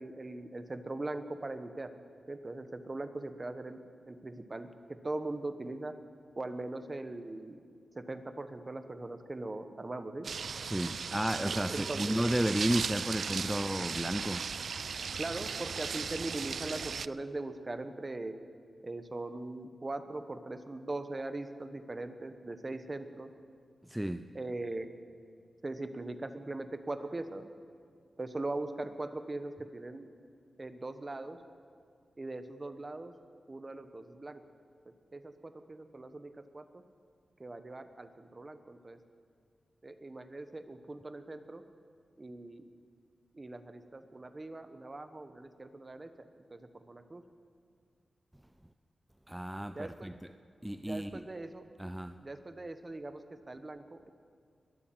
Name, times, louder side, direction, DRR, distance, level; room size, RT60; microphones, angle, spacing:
voice 1, 0.0-1.9 2.3-3.8 4.1-5.9 6.4-7.6 7.9-10.3 11.7-12.2 15.2-18.3 18.8-23.3 24.3-24.9 25.6-27.4 28.2-30.1 30.6-31.4 32.2-33.1 33.5-34.4 34.8-36.8 37.4-39.0 39.8-41.6 42.2-42.7 43.3-47.2 49.7-50.1 50.8-51.7 52.2-54.1, right 2 dB, 30° right, 9 dB, 1.1 m, -40 dB
sound 1, 10.2-17.1, right 6 dB, 70° right, 0.3 m, -37 dB
voice 2, 10.6-14.5 23.8-24.3 49.3-50.2 50.6-51.2 51.8-52.2, right 1 dB, 5° right, 10 dB, 0.4 m, -33 dB
22.0 x 8.5 x 7.7 m, 2.2 s
wide cardioid pair, 85°, 0 cm